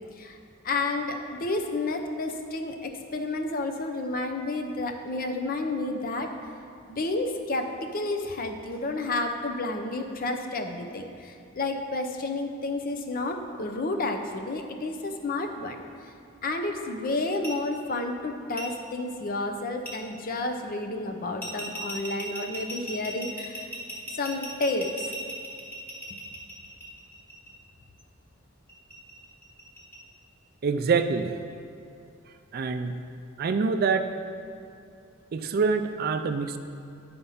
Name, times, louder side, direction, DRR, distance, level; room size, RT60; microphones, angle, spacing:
voice 1, 0.6-6.3 6.9-16.1 16.4-23.6 24.2-25.1, left 2 dB, 45° left, 5 dB, 0.6 m, -31 dB
sound 1, 17.4-17.5 18.6-18.7 19.9-20.0 21.4-27.5 28.7-30.0, right 1 dB, 10° left, 1.3 m, -37 dB
voice 2, 30.6-31.3 32.5-33.0 33.4-34.1 35.3-36.6, right 5 dB, 50° right, 8 dB, 0.4 m, -25 dB
9.6 x 4.3 x 5.6 m, 2.6 s
head